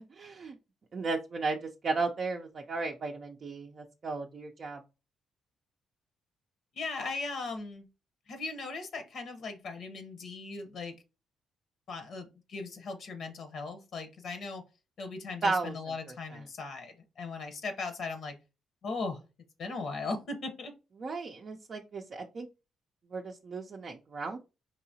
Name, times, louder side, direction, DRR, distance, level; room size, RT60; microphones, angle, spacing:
voice 1, 0.1-0.6 0.9-4.8 15.4-16.4 21.0-22.5 23.1-24.4, right 3 dB, 45° right, 1 dB, 0.5 m, -35 dB
voice 2, 6.8-7.9 8.3-10.9 11.9-14.6 15.0-18.3 18.8-19.2 19.6-20.7, left 3 dB, 65° left, 7 dB, 0.8 m, -38 dB
4.7 x 2.8 x 2.7 m, 0.29 s
cardioid pair, 90°, 0 cm